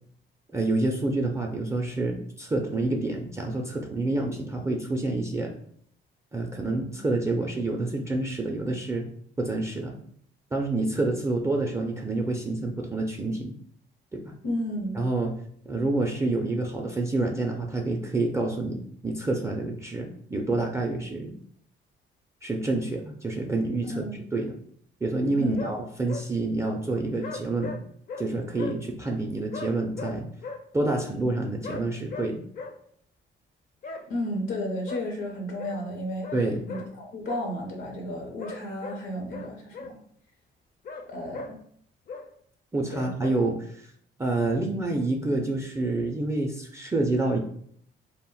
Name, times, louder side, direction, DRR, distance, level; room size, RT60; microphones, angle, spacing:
voice 1, 0.5-5.5 6.3-9.1 9.4-10.0 10.5-13.5 14.1-14.3 14.9-15.3 15.7-21.3 22.4-24.0 24.3-24.6 25.0-27.8 28.2-30.3 30.7-32.4 36.3-36.6 42.7-43.9 44.2-47.4, right 2 dB, 15° right, 1 dB, 0.3 m, -28 dB
voice 2, 14.4-15.0 23.8-24.1 25.4-25.6 34.1-36.3 36.7-40.0 41.1-41.6 42.9-43.1, left 1 dB, 80° left, 1 dB, 0.7 m, -33 dB
sound 1, 25.5-25.8 26.1-26.2 27.2-27.8 28.1-28.3 28.5-28.8 29.5-30.6 31.6-31.8 32.1-32.3 32.5-32.7 33.8-34.0 34.9-35.0 35.6-35.8 36.2-36.4 36.7-36.9 37.2-37.4 38.4-39.0 39.3-39.9 40.8-41.0 41.3-41.5 42.1-42.2 43.2-43.3, left 4 dB, 45° left, 0.5 m, -37 dB
2.1 x 2.0 x 3.7 m, 0.63 s
cardioid pair, 90°, 20 cm